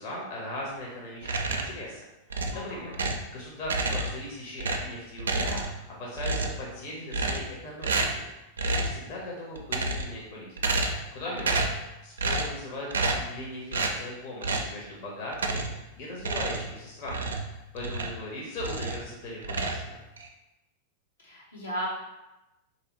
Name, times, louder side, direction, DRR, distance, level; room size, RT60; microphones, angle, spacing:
voice 1, 0.0-2.0 2.5-8.2 8.6-10.8 11.1-11.7 12.0-20.0, left 1 dB, 50° left, -4 dB, 1.0 m, -39 dB
sound 1, 1.2-1.8 2.3-3.3 3.6-4.3 4.6-5.9 6.2-6.7 7.1-7.6 7.8-8.3 8.6-9.0 9.6-10.2 10.6-11.1 11.4-11.8 12.2-12.6 12.9-13.3 13.7-14.0 14.4-14.7 15.3-15.8 16.2-18.2 18.6-19.1 19.4-20.3, right 3 dB, 75° right, 0.4 m, -29 dB
voice 2, 2.5-2.9 11.2-11.5 21.2-21.9, equal, 80° left, -6 dB, 1.2 m, -36 dB
3.4 x 2.8 x 3.0 m, 0.97 s
figure-of-eight pair, 90°, 0 cm